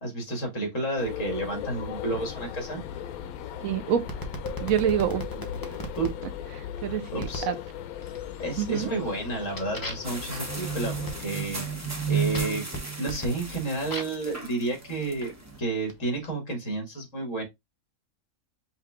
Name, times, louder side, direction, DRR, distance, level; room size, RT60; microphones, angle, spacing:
voice 1, 0.0-2.8 6.0-6.2 6.9-7.5 8.4-11.7 12.1-12.7 13.0-15.3 15.6-17.4, right 2 dB, 55° left, 2.2 m, -31 dB
sound 1, 1.0-11.3, left 10 dB, 85° left, 1.1 m, -38 dB
voice 2, 3.6-4.1 4.6-5.2 6.5-7.6 8.6-8.9, right 9 dB, 75° right, 1.0 m, -27 dB
sound 2, 4.1-6.1 7.2-7.5 8.0-8.5 8.9-14.3 15.1-16.3, left 1 dB, 20° left, 0.7 m, -39 dB
sound 3, 10.0-15.6, right 6 dB, 15° right, 0.7 m, -33 dB
5.6 x 2.4 x 3.4 m
omnidirectional pair, 1.5 m